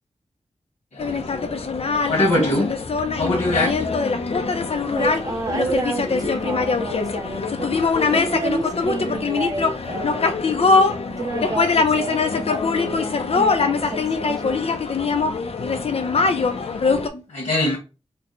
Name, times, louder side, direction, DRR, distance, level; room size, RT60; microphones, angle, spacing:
voice 1, 0.9-1.4 2.1-2.7 3.2-3.7 16.6-16.7 17.1-17.8, left 1 dB, 80° left, 1.6 m, -22 dB
sound 1, 1.0-17.1, left 4 dB, 55° left, 0.6 m, -22 dB
voice 2, 4.2-14.6, right 2 dB, 30° right, 0.6 m, -30 dB
3.3 x 2.1 x 4.0 m
cardioid pair, 60°, 12 cm